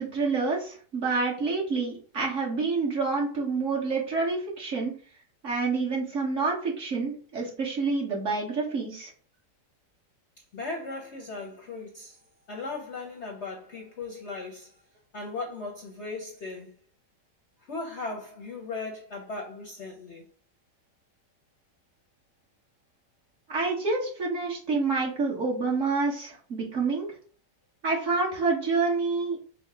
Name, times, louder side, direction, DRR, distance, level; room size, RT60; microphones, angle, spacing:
voice 1, 0.0-4.9 5.4-9.1 23.5-27.1 27.8-29.4, right 4 dB, 50° right, 1.5 m, -28 dB
voice 2, 10.5-12.2 12.5-14.8 15.1-16.7 17.6-20.2, left 3 dB, 55° left, 0.8 m, -37 dB
5.2 x 2.1 x 4.6 m
omnidirectional pair, 1.9 m